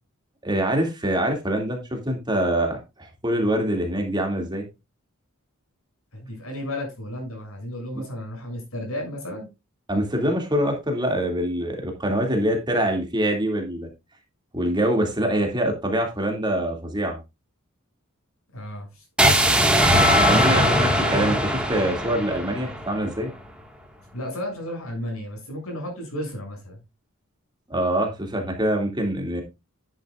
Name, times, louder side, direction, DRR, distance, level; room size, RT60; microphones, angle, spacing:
voice 1, 0.4-4.7 9.9-13.9 14.5-17.2 19.9-23.3 27.7-29.4, right 1 dB, 20° right, 3 dB, 2.4 m, -24 dB
voice 2, 6.1-9.5 18.5-19.0 20.3-21.4 24.1-26.8, left 1 dB, 80° left, 1 dB, 7.1 m, -32 dB
sound 1, 19.2-23.2, right 1 dB, 5° right, 1.7 m, -21 dB
Keyboard (musical), 19.8-22.2, left 7 dB, 50° left, 4.2 m, -28 dB
11.0 x 10.5 x 2.5 m, 0.25 s
head